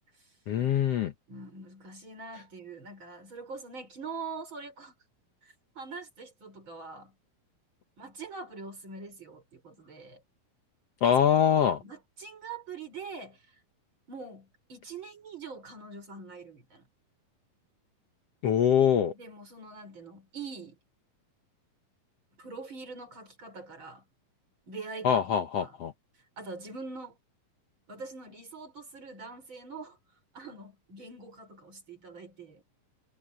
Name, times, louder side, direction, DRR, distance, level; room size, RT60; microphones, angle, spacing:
voice 1, 0.5-1.1 11.0-11.8 18.4-19.1 25.0-25.9, left 9 dB, 70° left, 1.5 m, -24 dB
voice 2, 1.3-4.9 5.4-7.1 8.0-10.2 11.2-11.3 11.8-13.6 14.1-16.9 19.1-20.8 22.4-24.0 24.7-25.3 25.6-25.7 26.4-27.2 27.9-30.0 30.3-32.6, right 4 dB, 35° right, 6.0 m, -43 dB
omnidirectional pair, 4.1 m